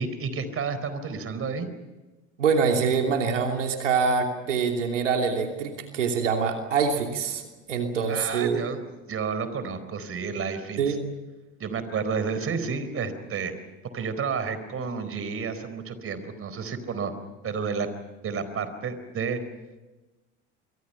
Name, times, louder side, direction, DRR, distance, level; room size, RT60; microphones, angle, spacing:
voice 1, 0.0-1.7 8.1-10.8 11.6-13.5 13.9-17.1 17.4-17.9 18.2-19.4, right 5 dB, 35° right, 12 dB, 4.3 m, -31 dB
voice 2, 2.4-7.4 7.7-8.6 10.8-11.0, right 5 dB, 90° right, 3 dB, 2.9 m, -25 dB
27.5 x 24.0 x 5.7 m, 1.1 s
hypercardioid pair, 75°, 36 cm